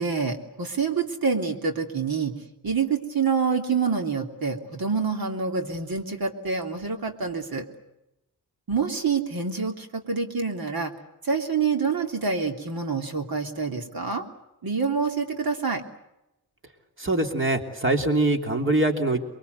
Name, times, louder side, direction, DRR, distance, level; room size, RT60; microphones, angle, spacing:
voice 1, 0.0-2.3 2.6-7.6 8.7-10.9 11.2-14.2 14.6-15.8, right 5 dB, 65° right, 4 dB, 3.3 m, -27 dB
voice 2, 17.0-19.2, right 2 dB, 30° right, 4 dB, 3.3 m, -23 dB
29.0 x 23.0 x 8.2 m, 0.89 s
wide cardioid pair, 180°, 38 cm